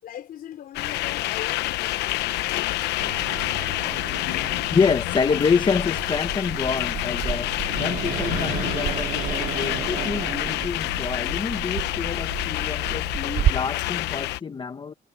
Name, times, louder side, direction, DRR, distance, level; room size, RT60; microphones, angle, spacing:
voice 1, 0.0-2.9, left 10 dB, 60° left, 4.9 m, -40 dB
sound 1, 0.7-14.4, left 17 dB, 85° left, 0.9 m, -28 dB
Growling, 3.0-13.5, right 10 dB, 60° right, 2.2 m, -32 dB
voice 2, 4.7-7.5 7.8-14.9, left 5 dB, 30° left, 1.3 m, -27 dB
cardioid pair, 110°, 17 cm